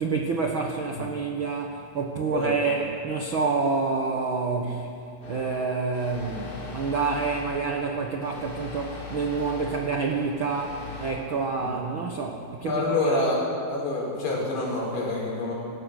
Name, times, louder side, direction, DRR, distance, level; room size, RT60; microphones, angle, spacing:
voice 1, 0.0-4.9 5.3-12.8, right 4 dB, 90° right, 1 dB, 1.1 m, -28 dB
sound 1, 5.2-11.1, left 4 dB, 50° left, 6.3 m, -40 dB
voice 2, 12.7-13.4 13.7-15.5, left 2 dB, 75° left, -3 dB, 7.6 m, -27 dB
28.0 x 16.5 x 6.6 m, 2.4 s
omnidirectional pair, 4.6 m